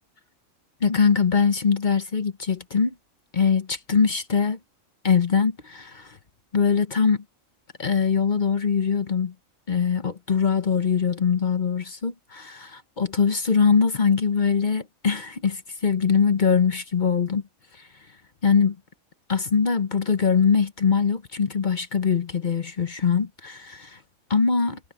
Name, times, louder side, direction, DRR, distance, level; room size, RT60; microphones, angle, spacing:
voice 1, 0.8-2.9 3.3-4.6 5.0-6.2 6.5-7.2 7.8-9.3 9.7-17.4 17.8-17.9 18.4-18.8 19.3-24.0 24.3-24.8, left 6 dB, 40° left, 1.0 m, -22 dB
omnidirectional pair, 1.4 m